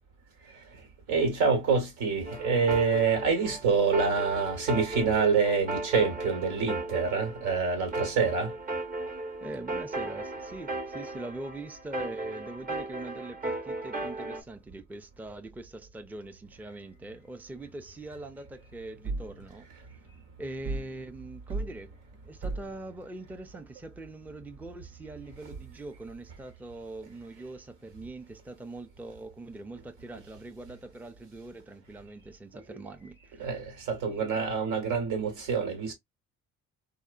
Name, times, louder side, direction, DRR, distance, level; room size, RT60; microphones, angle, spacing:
voice 1, 1.1-8.5 32.7-32.8 33.4-35.9, right 5 dB, 85° right, 1.3 m, -26 dB
sound 1, 2.2-14.4, right 2 dB, 30° right, 0.9 m, -36 dB
voice 2, 9.4-19.7 20.4-33.5 34.1-34.5, right 2 dB, 5° right, 0.4 m, -42 dB
sound 2, 19.0-19.4 20.6-21.0 21.5-21.8 22.4-22.8, right 3 dB, 55° right, 0.6 m, -33 dB
2.7 x 2.1 x 2.3 m
cardioid pair, 90°, 30 cm